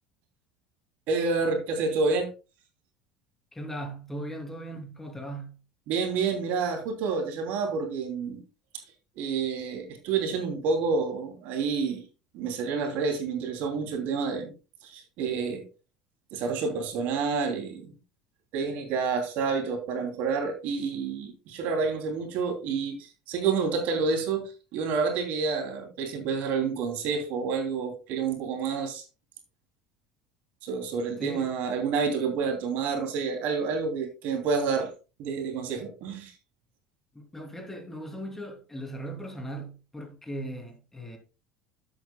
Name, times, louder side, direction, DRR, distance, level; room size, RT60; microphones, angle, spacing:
voice 1, 1.1-2.3 5.9-8.4 9.2-12.1 12.3-14.5 14.8-15.6 16.3-17.9 18.5-23.0 23.3-29.0 30.6-34.9 35.2-36.3, right 5 dB, 65° right, 3.0 m, -29 dB
voice 2, 3.5-5.6 31.2-31.5 37.1-41.2, right 1 dB, 10° left, 3.0 m, -38 dB
11.5 x 8.4 x 2.3 m
supercardioid pair, 90°, 3 cm